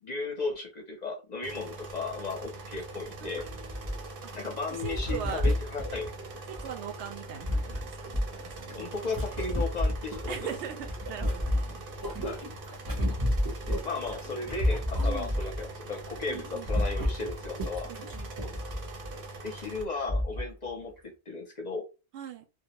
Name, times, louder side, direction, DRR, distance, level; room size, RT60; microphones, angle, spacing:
voice 1, 0.0-3.5 4.3-6.1 8.7-10.5 12.2-12.4 13.6-17.9 19.4-21.8, left 3 dB, 50° left, 0.6 m, -35 dB
sound 1, 1.4-19.8, right 2 dB, 60° right, 0.8 m, -43 dB
sound 2, 2.3-2.4 2.7-2.8 3.4-4.3 4.9-6.7 7.2-10.6 10.8-15.7 16.0-16.2 16.4-19.2 19.8-19.9 20.1-20.5 21.0-21.1, left 1 dB, 25° right, 0.5 m, -31 dB
voice 2, 3.2-4.3 4.8-5.5 6.5-8.1 8.4-8.8 10.3-11.8 15.0-15.4 16.3-16.8 17.9-18.7 22.1-22.4, right 8 dB, 85° right, 0.9 m, -41 dB
2.2 x 2.0 x 2.8 m
omnidirectional pair, 1.1 m